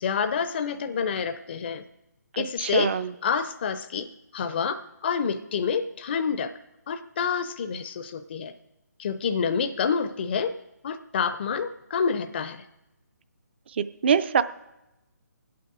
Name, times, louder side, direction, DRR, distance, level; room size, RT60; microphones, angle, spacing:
voice 1, 0.0-1.8 2.4-6.5 6.9-8.5 9.0-10.6 10.8-12.6, left 6 dB, 35° left, 10 dB, 0.4 m, -28 dB
voice 2, 2.6-3.1 14.0-14.4, right 7 dB, 35° right, 14 dB, 0.4 m, -22 dB
25.0 x 8.5 x 3.6 m, 0.94 s
figure-of-eight pair, 150°, 9 cm